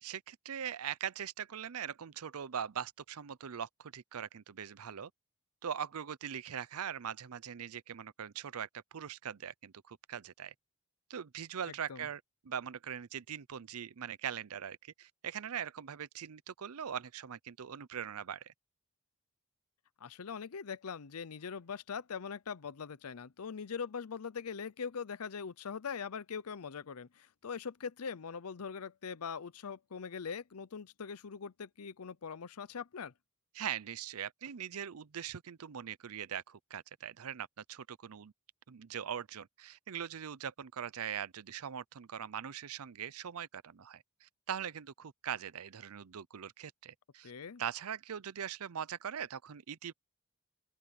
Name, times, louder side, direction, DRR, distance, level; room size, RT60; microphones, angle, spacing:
voice 1, 0.0-5.1 5.6-10.5 11.1-18.5 33.5-38.3 38.7-47.3 47.6-49.9, right 8 dB, 75° right, 0.6 m, -41 dB
voice 2, 20.0-33.1 47.2-47.6, left 6 dB, 75° left, 0.6 m, -42 dB
open air
head